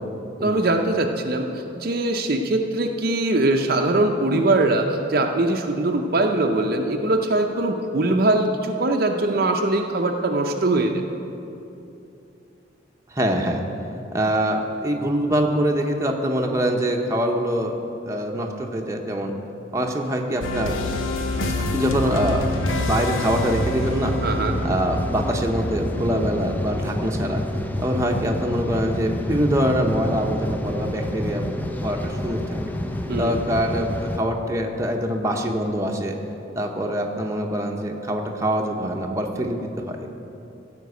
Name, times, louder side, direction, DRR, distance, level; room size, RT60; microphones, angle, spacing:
voice 1, 0.4-11.0 24.2-24.6 33.1-33.3, right 2 dB, 50° right, 3 dB, 0.6 m, -22 dB
voice 2, 13.1-13.6 14.1-17.8 18.0-19.3 19.7-20.8 21.6-22.5 22.8-24.1 24.6-27.4 27.8-31.4 31.8-32.6 33.2-36.1 36.6-39.6 39.9-40.1, equal, 15° right, 1 dB, 0.9 m, -24 dB
sound 1, 20.4-27.1, left 2 dB, 90° left, 0.9 m, -28 dB
sound 2, 21.3-34.2, left 1 dB, 10° left, 0.5 m, -29 dB
15.0 x 5.3 x 8.1 m, 2.8 s
head